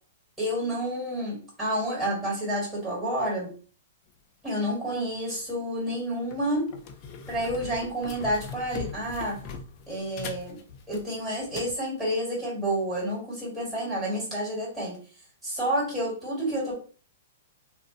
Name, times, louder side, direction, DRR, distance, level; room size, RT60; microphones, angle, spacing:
voice 1, 0.4-3.5 4.4-6.7 7.3-9.4 9.9-10.6 10.9-15.0 15.4-16.7, equal, 5° right, -7 dB, 1.6 m, -29 dB
sound 1, 5.2-5.4 5.9-6.0 6.3-11.8, left 5 dB, 35° left, 0.4 m, -41 dB
2.5 x 2.1 x 3.7 m, 0.39 s
hypercardioid pair, 150°, 0 cm